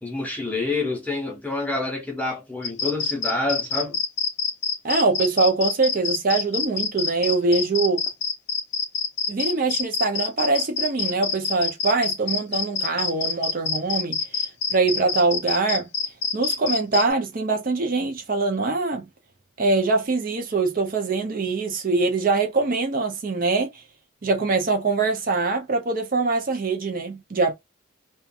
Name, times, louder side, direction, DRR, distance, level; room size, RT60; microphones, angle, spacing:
voice 1, 0.0-4.0, left 2 dB, 5° left, 0.6 m, -27 dB
sound 1, 2.6-17.0, left 5 dB, 55° left, 0.5 m, -26 dB
voice 2, 4.8-8.0 9.3-15.9 16.3-19.1 19.6-23.8 24.2-27.5, right 3 dB, 45° right, 0.5 m, -23 dB
2.4 x 2.2 x 2.6 m
head